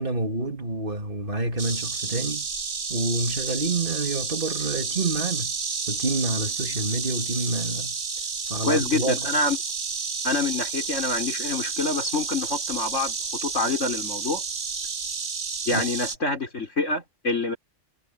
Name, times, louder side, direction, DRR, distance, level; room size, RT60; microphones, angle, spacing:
voice 1, 0.0-2.5 2.9-5.6 5.9-8.0 8.5-9.3 15.7-16.0, right 2 dB, 45° right, 2.6 m, -28 dB
Insect, 1.6-16.2, right 5 dB, 70° right, 1.9 m, -30 dB
voice 2, 8.6-9.6 10.2-13.2 13.4-14.4 15.7-17.6, left 3 dB, 75° left, 5.7 m, -26 dB
omnidirectional pair, 1.3 m